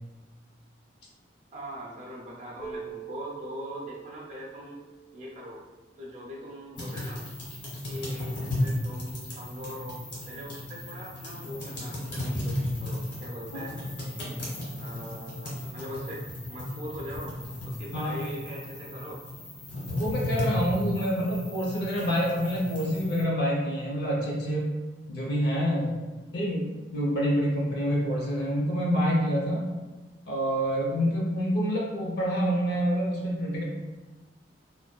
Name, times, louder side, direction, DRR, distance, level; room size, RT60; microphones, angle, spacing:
voice 1, 1.5-4.8 5.1-5.6 6.0-7.2 7.9-10.0 10.3-13.8 14.8-17.3 17.6-19.2 20.9-21.1, equal, 40° right, -3 dB, 0.5 m, -41 dB
Keyboard (musical), 2.6-5.8, right 7 dB, 10° left, 0.5 m, -44 dB
sound 1, 6.8-23.2, left 1 dB, 85° left, 1.4 m, -35 dB
voice 2, 19.7-24.7 25.1-26.1 26.3-26.6 26.9-29.7 30.2-33.6, equal, 60° left, -4 dB, 0.7 m, -27 dB
2.6 x 2.2 x 2.3 m, 1.3 s
head